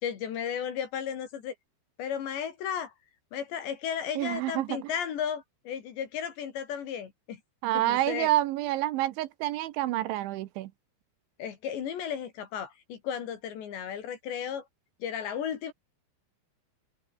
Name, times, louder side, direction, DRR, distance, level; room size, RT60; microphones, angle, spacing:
voice 1, 0.0-1.5 2.0-2.9 3.3-7.4 7.7-8.3 11.4-14.7 15.0-15.7, left 8 dB, 65° left, 4.5 m, -34 dB
voice 2, 4.2-4.8 7.6-10.7, right 15 dB, 75° right, 3.1 m, -28 dB
omnidirectional pair, 5.8 m